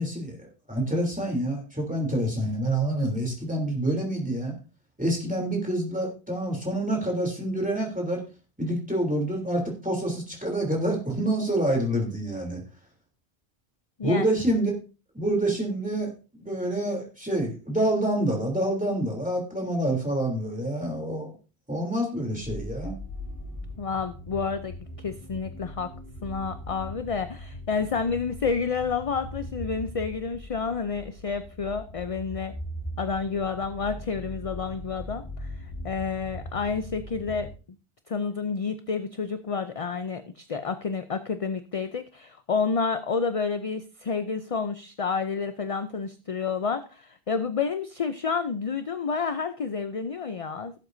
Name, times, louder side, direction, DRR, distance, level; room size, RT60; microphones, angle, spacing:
voice 1, 0.0-4.5 5.0-8.2 8.6-12.6 14.0-14.7 15.1-21.3 21.7-23.0, right 1 dB, 10° right, 0 dB, 3.2 m, -27 dB
sound 1, 22.4-37.5, left 1 dB, 20° left, 2.8 m, -40 dB
voice 2, 23.8-24.8 25.0-25.9 26.2-32.5 33.0-37.5 38.1-50.7, left 5 dB, 40° left, 10 dB, 0.6 m, -29 dB
17.0 x 7.9 x 2.7 m, 0.33 s
omnidirectional pair, 1.0 m